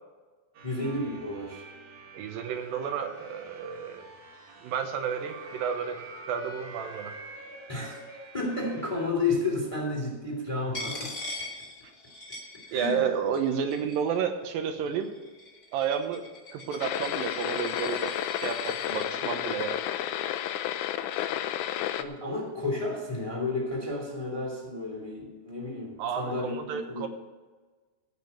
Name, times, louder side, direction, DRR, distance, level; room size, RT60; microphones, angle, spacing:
sound 1, 0.5-9.1, right 3 dB, 65° right, 3.3 m, -46 dB
voice 1, 0.6-1.7 7.7-11.2 12.7-13.0 22.0-27.1, left 2 dB, 10° left, 0 dB, 2.1 m, -32 dB
voice 2, 2.1-4.1 4.6-6.0 6.3-7.1 12.7-15.1 15.7-16.2 16.5-19.8 26.0-27.1, right 7 dB, 85° right, 6 dB, 2.8 m, -31 dB
Coin (dropping), 10.7-13.1 13.3-14.2 14.9-19.1, left 2 dB, 25° left, 2.5 m, -41 dB
sound 2, 16.8-22.0, left 11 dB, 75° left, 1.9 m, -31 dB
15.5 x 5.5 x 7.1 m, 1.3 s
omnidirectional pair, 4.0 m